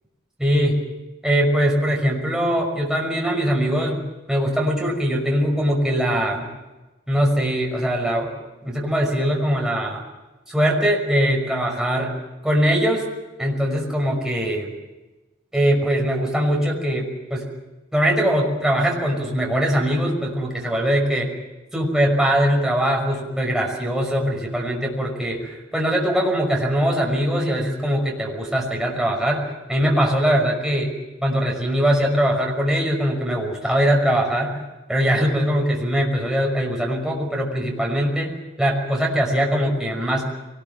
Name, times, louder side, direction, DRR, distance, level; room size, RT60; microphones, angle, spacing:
voice 1, 0.4-0.8 1.2-4.0 4.3-6.5 7.1-8.3 8.6-10.0 10.5-12.1 12.4-13.0 13.4-14.7 15.5-17.5 17.9-21.3 21.7-29.4 29.7-30.9 31.2-34.6 34.9-38.3 38.6-40.3, equal, 5° right, -1 dB, 5.9 m, -21 dB
23.5 x 20.0 x 7.4 m, 1.1 s
head